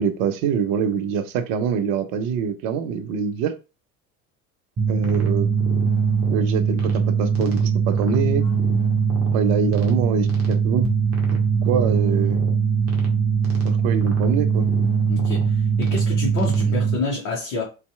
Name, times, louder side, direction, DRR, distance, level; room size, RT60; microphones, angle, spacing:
voice 1, 0.0-3.5 4.9-5.5 6.3-8.4 9.3-10.9 11.3-12.4 13.6-14.7, right 6 dB, 50° right, 0.5 m, -25 dB
sound 1, 4.8-17.0, right 6 dB, 35° right, 0.9 m, -21 dB
voice 2, 15.1-17.7, left 3 dB, 45° left, 0.8 m, -28 dB
2.6 x 2.3 x 2.3 m
figure-of-eight pair, 65°, 41 cm